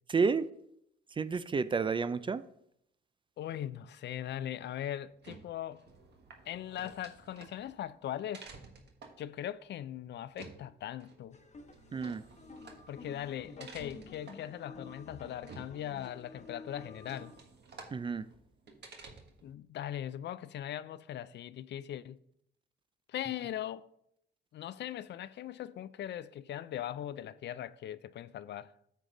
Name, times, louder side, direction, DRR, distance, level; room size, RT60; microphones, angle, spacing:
voice 1, 0.1-0.5 1.1-2.4 11.9-12.2 17.9-18.3, right 5 dB, 25° right, 0.3 m, -30 dB
voice 2, 3.4-5.8 6.5-8.5 9.2-11.4 12.9-17.3 19.4-22.2 23.1-23.9 24.5-28.7, left 11 dB, 60° left, 0.4 m, -40 dB
sound 1, 5.0-19.5, right 4 dB, 60° right, 1.5 m, -54 dB
sound 2, 11.3-17.4, left 3 dB, 35° left, 1.0 m, -51 dB
9.2 x 6.3 x 3.9 m
cardioid pair, 90°, 20 cm